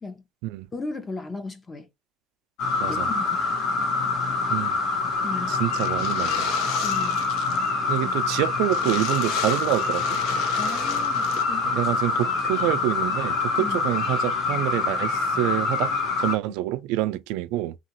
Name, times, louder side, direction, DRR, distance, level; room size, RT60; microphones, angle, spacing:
voice 1, 0.7-1.9 2.9-3.2 3.8-3.9 5.2-5.5 6.8-7.2 10.6-11.7 13.6-13.8, left 3 dB, 15° left, 0.6 m, -35 dB
sound 1, 2.6-16.4, left 4 dB, 60° left, 1.0 m, -25 dB
voice 2, 5.5-6.4 7.9-10.2 11.6-17.8, right 15 dB, 80° right, 0.3 m, -27 dB
sound 2, 5.8-7.7 8.0-8.1 8.3-8.4 8.7-11.4, left 8 dB, 75° left, 0.6 m, -36 dB
2.9 x 2.4 x 2.9 m
cardioid pair, 155°, 0 cm